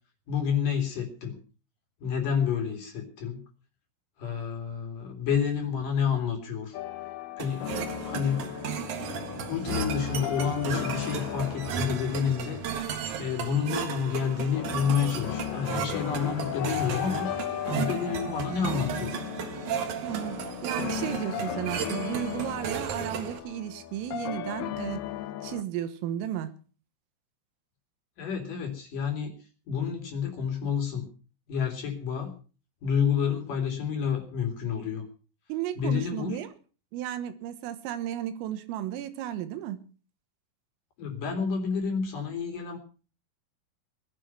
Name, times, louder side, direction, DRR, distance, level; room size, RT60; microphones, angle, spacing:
voice 1, 0.3-1.4 2.0-3.4 4.2-6.8 7.4-7.7 8.0-8.8 9.5-12.9 13.2-17.3 17.6-19.2 28.2-29.3 29.7-31.1 31.5-32.3 32.8-35.0 35.8-36.4 41.0-42.8, left 7 dB, 45° left, 3.8 m, -29 dB
sound 1, 6.7-25.6, left 11 dB, 80° left, 2.3 m, -37 dB
sound 2, 7.4-23.4, right 8 dB, 70° right, 1.9 m, -35 dB
voice 2, 20.0-25.0 25.4-26.5 35.5-36.5 36.9-39.8, right 11 dB, 85° right, 3.9 m, -34 dB
19.0 x 11.5 x 5.8 m
omnidirectional pair, 5.8 m